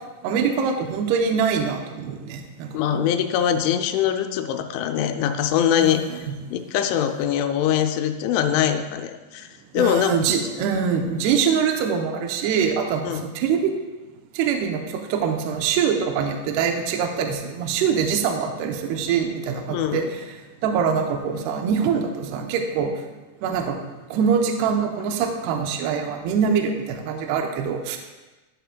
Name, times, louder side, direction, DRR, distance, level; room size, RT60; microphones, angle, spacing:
voice 1, 0.2-3.1 5.8-6.3 9.8-13.7 14.4-20.3 20.6-22.9 23.4-23.8 24.1-28.0, right 6 dB, 85° right, 3 dB, 2.4 m, -24 dB
voice 2, 2.7-6.0 6.5-9.5 9.7-10.1 13.0-13.3 19.7-20.1, left 9 dB, 90° left, 5 dB, 3.0 m, -22 dB
13.5 x 6.8 x 2.2 m, 1.2 s
omnidirectional pair, 5.3 m